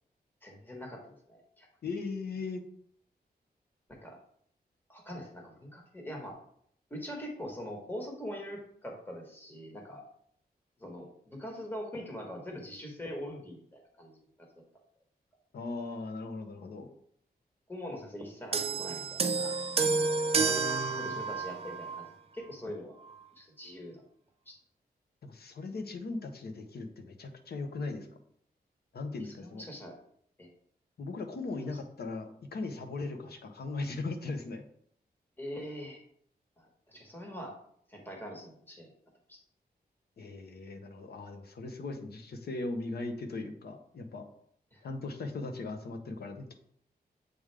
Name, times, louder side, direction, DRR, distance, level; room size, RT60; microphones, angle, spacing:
voice 1, 0.4-1.7 3.9-4.1 4.9-6.4 6.9-10.0 10.8-14.5 17.7-19.5 21.0-22.1 22.3-23.0 23.4-24.0 24.5-24.6 29.2-29.9 30.4-30.5 35.4-36.0 36.6-37.6 37.9-38.9 39.3-39.4 44.7-44.8, equal, 10° left, 0 dB, 1.2 m, -43 dB
voice 2, 1.8-2.6 15.5-16.9 20.3-21.2 25.2-28.1 28.9-29.6 31.0-34.6 40.2-44.2 44.8-46.5, left 3 dB, 75° left, 5 dB, 0.9 m, -38 dB
sound 1, 18.5-22.1 23.0-23.2, right 4 dB, 40° right, 0.4 m, -30 dB
7.9 x 3.7 x 3.3 m, 0.65 s
wide cardioid pair, 160°, 16 cm